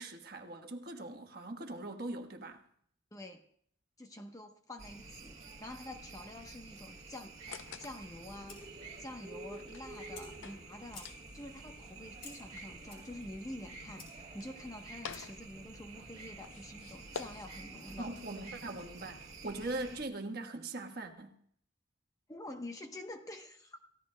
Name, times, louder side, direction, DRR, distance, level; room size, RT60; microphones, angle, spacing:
voice 1, 0.0-2.6 18.0-21.4, right 2 dB, 50° right, 1.3 m, -41 dB
voice 2, 3.1-3.4 4.0-18.1 22.3-23.8, left 1 dB, 15° left, 0.9 m, -47 dB
sound 1, 4.8-20.0, right 3 dB, 35° right, 1.7 m, -50 dB
sound 2, 7.4-19.8, left 6 dB, 85° left, 0.6 m, -52 dB
Fire, 8.3-15.5, left 3 dB, 45° left, 4.8 m, -57 dB
29.0 x 15.5 x 2.2 m
head